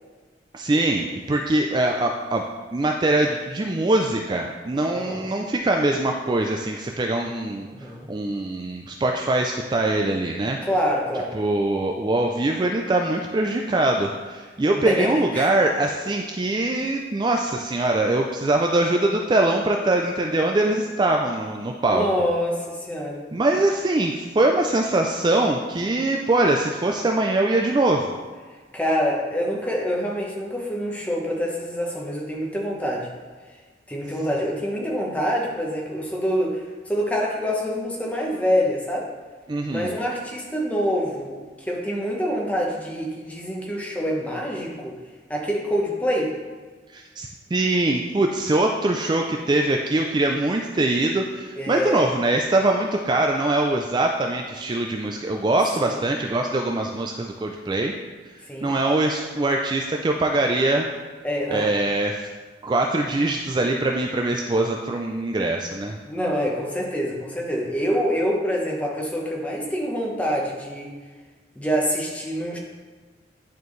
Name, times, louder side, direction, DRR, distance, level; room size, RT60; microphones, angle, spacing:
voice 1, 0.5-2.4 2.7-10.6 11.3-22.1 23.3-28.0 39.5-39.9 46.9-57.9 58.6-60.9 61.5-62.3 62.6-66.0, right 2 dB, 25° right, 2 dB, 0.4 m, -23 dB
voice 2, 4.9-5.3 7.6-8.1 10.6-11.3 14.8-15.5 21.9-23.2 28.7-33.1 33.9-39.1 39.7-45.0 45.3-46.3 51.6-52.0 55.8-56.0 58.5-58.7 61.2-61.7 66.1-70.9 71.5-72.6, equal, 10° left, -2 dB, 1.0 m, -26 dB
10.5 x 4.5 x 3.1 m, 1.4 s
head